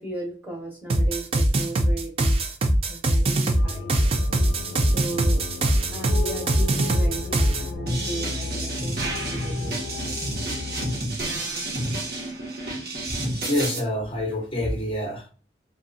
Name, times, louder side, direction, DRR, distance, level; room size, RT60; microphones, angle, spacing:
voice 1, 0.0-2.5 2.9-3.9 4.8-5.4 5.9-10.6, right 2 dB, 10° right, 0.7 m, -36 dB
sound 1, 0.9-7.7, right 1 dB, 30° right, 0.3 m, -22 dB
sound 2, 3.5-11.0, left 4 dB, 85° left, 0.4 m, -35 dB
sound 3, 7.9-13.8, right 1 dB, 60° right, 0.9 m, -30 dB
voice 2, 13.5-15.3, left 1 dB, 30° left, 0.5 m, -26 dB
2.7 x 2.2 x 2.5 m
head